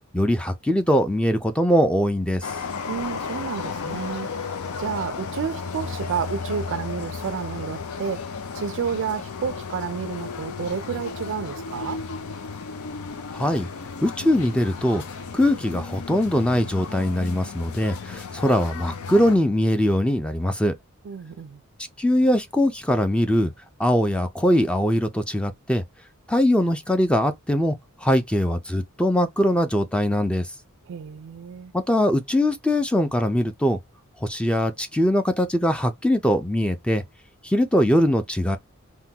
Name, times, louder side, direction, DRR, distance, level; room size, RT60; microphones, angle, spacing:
voice 1, 0.1-2.5 13.3-13.7 14.0-15.0 15.3-20.7 22.0-23.5 23.8-25.8 26.3-27.8 28.0-30.5 31.7-33.8 34.2-37.0 37.4-38.6, equal, 5° left, 0.4 m, -21 dB
sound 1, 2.4-19.4, left 5 dB, 75° left, 0.5 m, -34 dB
voice 2, 2.9-4.3 4.8-8.3 8.5-12.0 21.0-21.6 30.9-31.7, right 7 dB, 60° right, 0.4 m, -30 dB
3.6 x 2.2 x 2.8 m
head